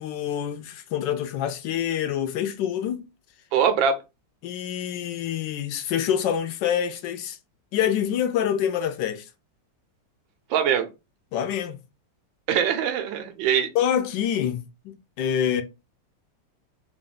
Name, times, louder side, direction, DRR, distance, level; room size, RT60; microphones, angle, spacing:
voice 1, 0.0-3.1 4.4-7.4 7.7-9.3 11.3-11.8 13.7-15.6, left 9 dB, 75° left, 1.2 m, -26 dB
voice 2, 3.5-4.0 10.5-10.9 12.5-13.7, right 8 dB, 80° right, 1.4 m, -22 dB
3.4 x 2.5 x 3.7 m
omnidirectional pair, 2.1 m